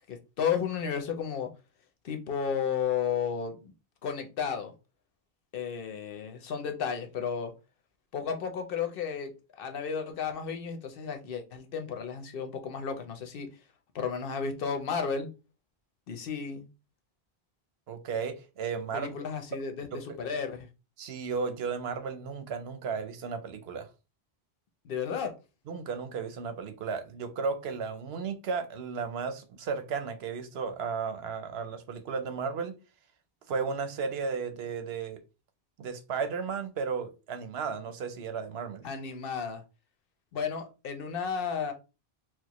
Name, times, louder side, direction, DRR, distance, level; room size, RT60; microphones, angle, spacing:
voice 1, 0.1-1.5 2.0-3.7 4.0-4.7 5.5-7.5 8.1-13.5 13.9-15.3 16.1-16.7 18.9-20.7 24.8-25.3 38.8-39.6 40.3-41.7, left 6 dB, 65° left, 0.8 m, -33 dB
voice 2, 17.9-19.1 19.9-20.0 21.0-23.9 25.7-32.7 33.5-35.2 35.8-38.8, right 5 dB, 80° right, 0.9 m, -34 dB
4.4 x 2.1 x 2.9 m
omnidirectional pair, 1.0 m